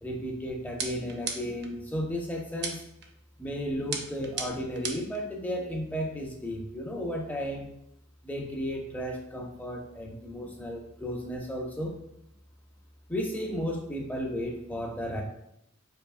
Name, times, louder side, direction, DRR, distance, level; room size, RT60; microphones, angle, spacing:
voice 1, 0.0-2.8 3.4-7.7 8.2-12.0 13.1-15.2, equal, 10° left, 0 dB, 0.4 m, -34 dB
sound 1, 0.8-1.7 2.6-3.1 3.9-5.2, right 5 dB, 50° right, 0.5 m, -35 dB
4.7 x 2.7 x 2.4 m, 0.77 s
head